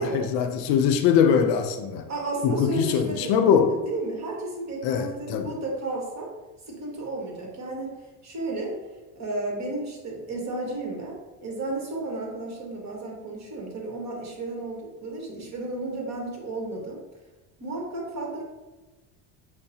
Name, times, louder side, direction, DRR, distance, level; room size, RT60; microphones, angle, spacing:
voice 1, 0.0-2.1 2.4-3.8 4.8-5.5, left 7 dB, 75° left, 6 dB, 0.5 m, -22 dB
voice 2, 2.1-6.3 6.7-7.9 8.2-8.8 9.1-17.0 17.6-18.4, right 2 dB, 35° right, -1 dB, 1.1 m, -33 dB
5.6 x 2.0 x 2.7 m, 1.2 s
cardioid pair, 110°, 44 cm